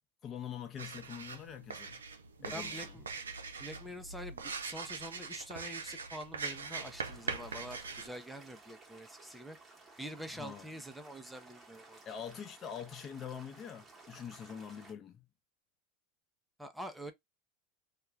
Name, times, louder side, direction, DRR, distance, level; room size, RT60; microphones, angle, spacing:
voice 1, 0.2-2.0 2.4-2.9 10.3-10.7 12.0-15.3, left 8 dB, 35° left, 0.7 m, -44 dB
sound 1, 0.8-8.1, right 5 dB, 85° right, 0.4 m, -42 dB
voice 2, 2.4-3.1 3.6-9.6 10.0-12.0 16.6-17.1, equal, 5° right, 0.5 m, -46 dB
sound 2, 6.4-14.9, right 3 dB, 20° right, 0.9 m, -57 dB
2.3 x 2.2 x 3.0 m
hypercardioid pair, 85°, 0 cm